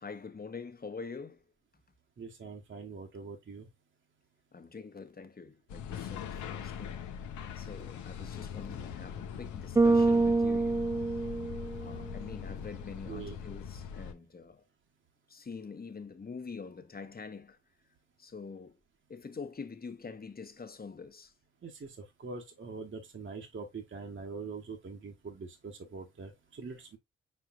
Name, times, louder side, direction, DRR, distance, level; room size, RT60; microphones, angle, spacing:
voice 1, 0.0-1.4 4.5-7.0 7.6-10.8 11.8-14.6 15.3-17.6 18.2-18.8 19.1-21.3, left 5 dB, 30° left, 1.0 m, -45 dB
voice 2, 2.2-3.7 13.1-13.4 21.6-21.9 22.2-27.0, right 4 dB, 40° right, 1.1 m, -43 dB
sound 1, 5.7-14.1, left 8 dB, 80° left, 0.8 m, -41 dB
Bass guitar, 9.8-12.1, right 3 dB, 10° right, 0.3 m, -26 dB
5.0 x 4.4 x 2.4 m
supercardioid pair, 50°, 29 cm